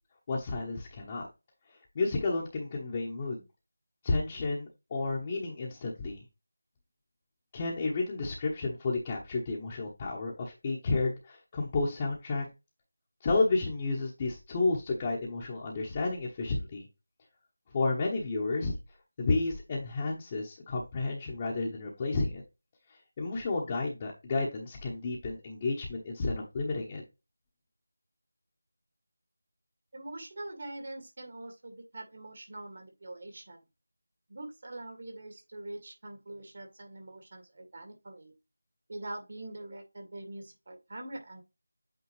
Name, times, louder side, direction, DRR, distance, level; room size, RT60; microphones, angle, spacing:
voice 1, 0.3-1.3 1.9-3.4 4.0-6.2 7.5-12.5 13.2-16.9 17.7-18.7 19.2-22.4 23.2-27.0, left 3 dB, 25° left, -3 dB, 1.0 m, -31 dB
voice 2, 29.9-33.6 34.3-38.3 38.9-41.4, right 2 dB, 50° right, 3 dB, 2.4 m, -43 dB
8.5 x 3.6 x 3.2 m, 0.25 s
figure-of-eight pair, 165°, 0 cm